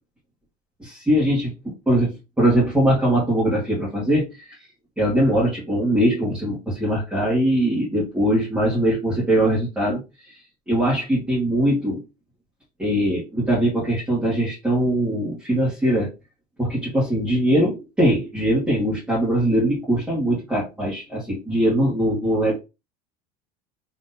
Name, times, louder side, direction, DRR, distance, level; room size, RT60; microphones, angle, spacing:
voice 1, 0.8-4.6 5.0-10.4 10.7-12.0 12.8-16.1 16.6-22.6, right 1 dB, 5° right, -7 dB, 2.0 m, -21 dB
4.2 x 3.7 x 2.7 m, 0.26 s
cardioid pair, 150°, 19 cm